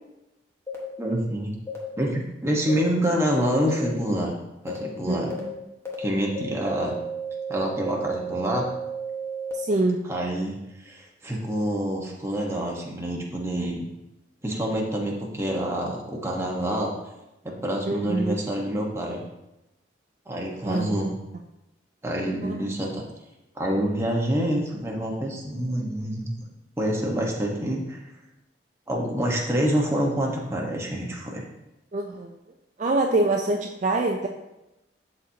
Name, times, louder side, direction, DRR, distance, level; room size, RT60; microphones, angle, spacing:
sound 1, 0.7-0.8 1.7-1.8 2.7-2.8 3.7-3.8 4.7-4.8 5.3-5.4 5.9-6.0 6.4-9.5, right 4 dB, 15° left, 1.3 m, -33 dB
voice 1, 1.0-1.5 2.0-4.3 4.6-5.3 6.0-6.9 7.5-8.6 10.1-10.6 10.8-13.8 14.4-16.9 17.4-19.2 20.3-21.2 22.0-23.0 23.5-26.4 26.8-28.0 28.9-31.4, equal, 15° right, -2 dB, 1.2 m, -27 dB
voice 2, 5.0-5.5 9.6-10.1 17.9-18.4 20.7-21.2 22.4-22.5 31.9-32.3 32.8-34.3, right 2 dB, 45° right, 2 dB, 0.5 m, -25 dB
12.0 x 4.3 x 2.8 m, 0.95 s
head